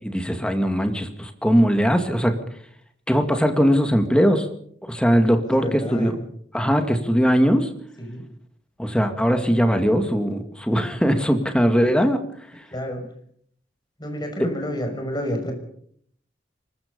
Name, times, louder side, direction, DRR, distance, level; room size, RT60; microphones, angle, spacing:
voice 1, 0.0-2.4 3.1-4.5 4.8-6.2 6.5-7.7 8.8-12.2, equal, 5° left, 7 dB, 2.3 m, -20 dB
voice 2, 5.4-6.1 8.0-8.2 12.7-13.0 14.0-15.5, equal, 25° left, 4 dB, 6.0 m, -29 dB
24.5 x 21.0 x 5.4 m, 0.63 s
head